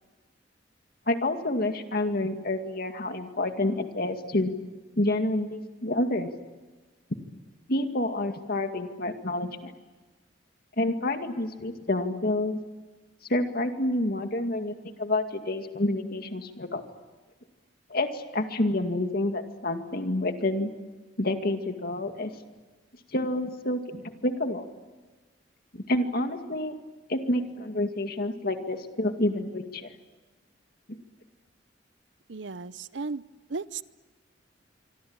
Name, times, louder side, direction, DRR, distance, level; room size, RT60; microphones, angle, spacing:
voice 1, 1.1-4.5 5.0-6.3 7.7-9.7 10.8-12.6 13.3-16.8 17.9-20.7 21.2-22.3 23.1-24.7 25.7-26.7 27.1-29.9 30.9-31.0, left 1 dB, 55° left, 6 dB, 2.2 m, -28 dB
voice 2, 32.3-33.2 33.5-33.8, right 4 dB, 85° right, 16 dB, 0.8 m, -35 dB
25.5 x 25.0 x 8.9 m, 1.3 s
head